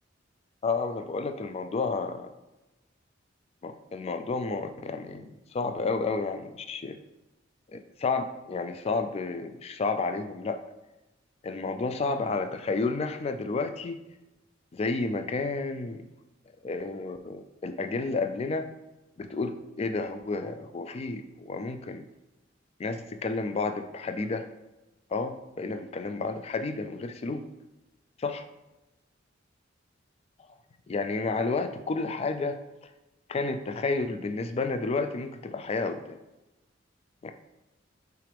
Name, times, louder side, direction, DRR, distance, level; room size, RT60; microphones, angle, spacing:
voice 1, 0.6-2.3 3.6-7.0 7.7-10.6 11.4-14.0 14.7-16.0 16.6-18.7 19.2-22.1 22.8-24.5 25.1-27.4 28.2-28.5 30.9-32.6 33.3-36.2 37.2-37.3, left 3 dB, 30° left, 8 dB, 0.3 m, -31 dB
5.8 x 2.5 x 3.4 m, 1.0 s
head